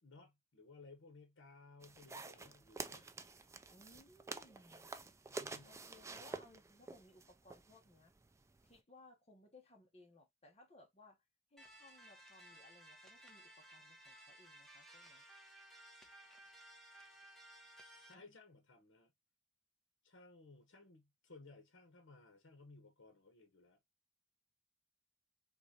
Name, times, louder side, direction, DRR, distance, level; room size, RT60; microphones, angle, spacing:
voice 1, 0.0-3.1 5.3-5.9 18.1-19.1 20.0-23.8, left 3 dB, 70° left, 0.9 m, -60 dB
sound 1, 1.8-8.8, right 3 dB, 15° right, 0.3 m, -49 dB
voice 2, 3.7-4.9 5.6-8.1 8.6-11.2 11.5-15.2 18.1-18.3, left 2 dB, 30° left, 1.0 m, -63 dB
sound 2, 11.6-18.1, right 1 dB, ahead, 0.8 m, -59 dB
3.9 x 3.0 x 2.8 m
head